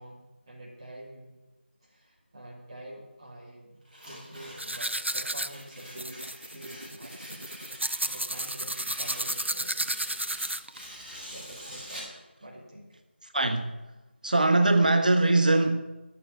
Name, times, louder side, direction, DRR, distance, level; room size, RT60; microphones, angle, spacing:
voice 1, 0.0-1.3 1.8-3.8 4.1-9.8 11.3-13.0, right 1 dB, 25° right, 2.8 m, -47 dB
Tearing, 3.8-12.2, equal, 5° right, 3.1 m, -46 dB
sound 1, 4.6-10.9, right 1 dB, 90° right, 0.7 m, -33 dB
voice 2, 13.2-13.7 14.2-15.8, right 2 dB, 45° right, 1.0 m, -22 dB
13.0 x 6.7 x 9.2 m
figure-of-eight pair, 170°, 6 cm